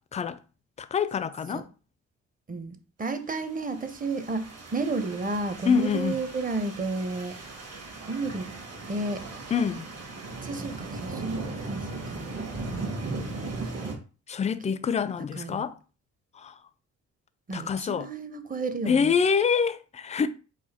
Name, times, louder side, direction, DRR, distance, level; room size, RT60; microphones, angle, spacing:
voice 1, 0.8-1.7 5.7-6.1 9.5-9.9 14.3-15.7 16.4-16.5 17.5-18.1 18.9-20.3, left 6 dB, 25° left, 0.3 m, -26 dB
voice 2, 2.5-7.4 8.0-8.5 8.9-9.3 10.4-12.4 15.4-15.7 17.5-19.1, right 3 dB, 30° right, 0.7 m, -32 dB
sound 1, 3.6-13.9, right 3 dB, 55° right, 1.4 m, -37 dB
4.8 x 2.2 x 4.2 m
cardioid pair, 90°, 30 cm